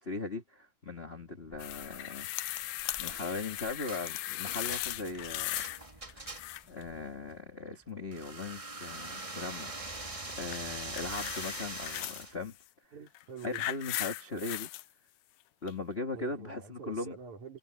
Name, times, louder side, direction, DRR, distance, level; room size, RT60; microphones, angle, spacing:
voice 1, 0.0-2.6 3.0-5.7 6.1-6.3 6.7-12.6 13.4-14.7 15.6-17.2, left 3 dB, 30° left, 1.3 m, -39 dB
sound 1, 1.5-11.7, equal, 5° right, 6.0 m, -64 dB
sound 2, 1.6-5.8 6.1-6.8 10.5-12.3 13.1-14.8 15.7-15.8, left 16 dB, 85° left, 2.3 m, -38 dB
sound 3, 3.9-4.1 4.5-6.7 8.1-12.4, right 2 dB, 35° right, 0.5 m, -42 dB
voice 2, 12.9-13.6 16.1-17.6, right 7 dB, 65° right, 5.3 m, -46 dB
omnidirectional pair, 3.7 m